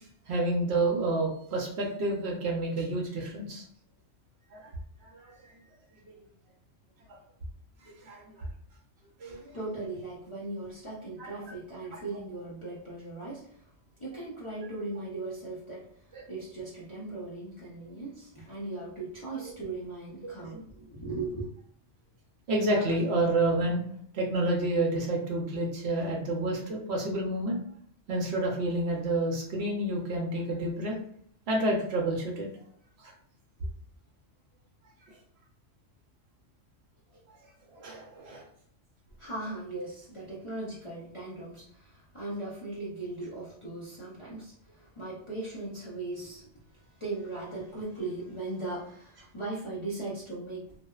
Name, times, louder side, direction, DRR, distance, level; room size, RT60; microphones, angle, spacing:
voice 1, 0.3-3.6 4.5-4.7 5.1-5.5 6.1-6.2 7.1-7.2 7.8-8.5 9.2-9.4 11.2-11.3 11.9-12.0 16.1-16.2 19.4-19.5 20.5-20.6 22.5-23.8 24.1-27.6 28.1-30.9 31.5-32.6 33.0-33.1 35.1-35.2 37.7-38.4, right 2 dB, 65° right, -1 dB, 0.8 m, -29 dB
voice 2, 9.3-13.7 14.0-21.5 39.2-50.8, right 2 dB, 35° left, -8 dB, 0.5 m, -38 dB
2.6 x 2.0 x 2.3 m, 0.64 s
omnidirectional pair, 1.3 m